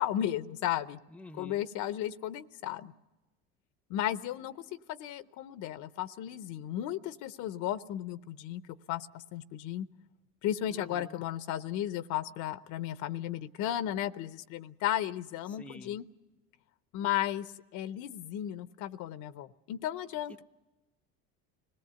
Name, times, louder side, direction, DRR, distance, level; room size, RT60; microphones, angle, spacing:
voice 1, 0.0-1.0 1.4-2.9 3.9-8.6 8.9-9.9 10.4-16.0 16.9-20.4, left 12 dB, 65° left, 0.8 m, -34 dB
voice 2, 1.1-1.7 10.7-11.2 15.5-16.0, left 1 dB, 5° left, 0.6 m, -49 dB
25.5 x 18.0 x 6.9 m
supercardioid pair, 95°, 32 cm